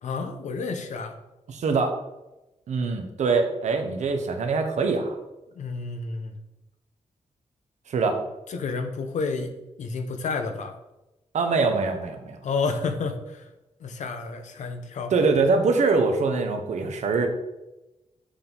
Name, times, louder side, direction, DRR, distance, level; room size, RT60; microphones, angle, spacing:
voice 1, 0.0-1.1 5.6-6.3 8.5-9.5 9.8-10.8 12.4-13.5 13.8-15.1, left 4 dB, 90° left, 7 dB, 0.9 m, -30 dB
voice 2, 1.5-1.9 2.7-5.2 7.9-8.2 11.3-12.4 15.1-17.3, right 4 dB, 80° right, 5 dB, 1.1 m, -23 dB
7.2 x 6.6 x 3.9 m, 1.0 s
wide cardioid pair, 145°, 12 cm